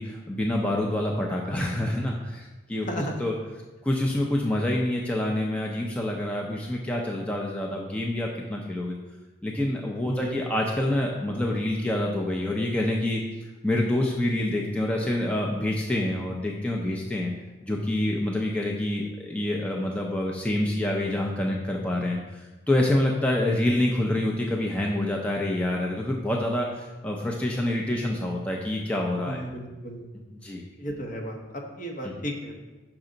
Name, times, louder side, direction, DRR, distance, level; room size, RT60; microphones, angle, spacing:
voice 1, 0.0-3.3 3.8-8.9 9.4-13.2 13.6-17.3 17.6-29.4 30.4-30.6 32.0-32.1, left 1 dB, 5° left, -1 dB, 0.4 m, -27 dB
voice 2, 2.8-3.2 10.0-10.3 29.2-30.1 30.8-32.7, equal, 40° left, 1 dB, 0.9 m, -34 dB
5.9 x 5.4 x 3.8 m, 1.2 s
head